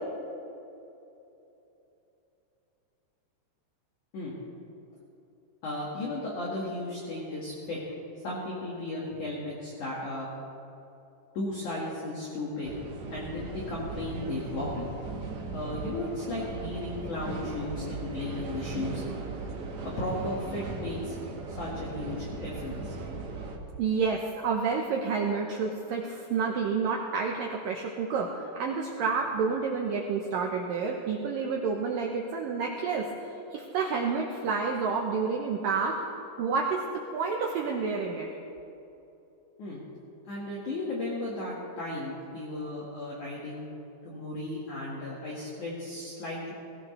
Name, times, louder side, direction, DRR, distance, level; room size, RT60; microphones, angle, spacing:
voice 1, 5.6-7.8 8.2-10.3 11.3-12.7 13.1-14.9 15.5-19.0 20.0-21.2 21.5-22.9 39.6-39.8 40.3-43.7 44.0-46.5, left 2 dB, 50° left, -6 dB, 2.8 m, -35 dB
sound 1, 12.6-23.6, right 3 dB, 55° right, 2.1 m, -38 dB
voice 2, 23.8-36.0 36.4-38.3, right 5 dB, 80° right, 0 dB, 2.0 m, -29 dB
21.0 x 16.0 x 3.3 m, 2.9 s
omnidirectional pair, 5.2 m